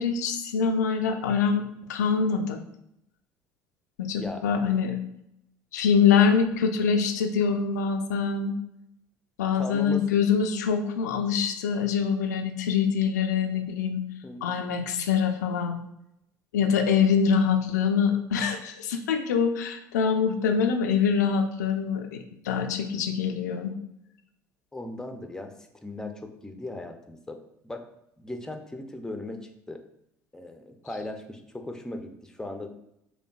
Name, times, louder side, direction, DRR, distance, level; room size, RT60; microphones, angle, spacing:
voice 1, 0.0-1.6 1.9-2.6 4.0-5.0 5.7-8.5 9.4-14.0 14.4-15.8 16.5-23.7, left 6 dB, 85° left, 4 dB, 0.4 m, -24 dB
voice 2, 9.6-10.0 14.2-14.6 24.7-25.5 25.8-27.4 27.6-27.8 28.2-29.8 30.3-32.7, left 1 dB, 5° left, 6 dB, 0.5 m, -38 dB
5.2 x 2.2 x 2.3 m, 0.80 s
hypercardioid pair, 65°, 9 cm